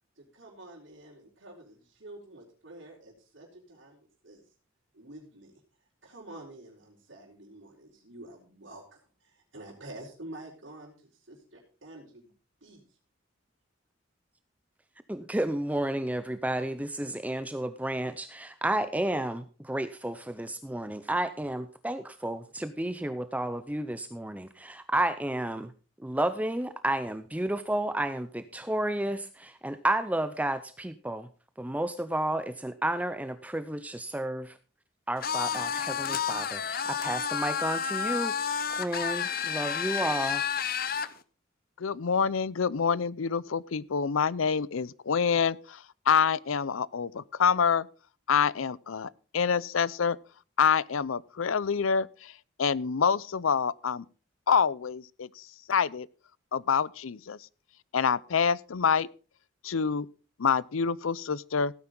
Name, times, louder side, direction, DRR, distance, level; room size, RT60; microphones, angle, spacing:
voice 1, 0.2-4.4 4.9-5.5 6.0-12.3 12.6-13.0, right 1 dB, 65° right, 4.0 m, -48 dB
voice 2, 15.1-25.7 26.0-31.3 31.6-34.6 35.1-38.3 38.8-40.4, right 1 dB, 5° right, 0.5 m, -31 dB
sound 1, 35.2-41.1, left 7 dB, 45° left, 0.8 m, -30 dB
voice 3, 41.8-47.9 48.3-50.2 50.6-52.3 52.6-54.0 54.5-55.3 55.7-56.1 56.5-57.4 57.9-59.1 59.6-60.1 60.4-61.7, left 6 dB, 85° left, 0.6 m, -26 dB
16.5 x 9.6 x 3.9 m
head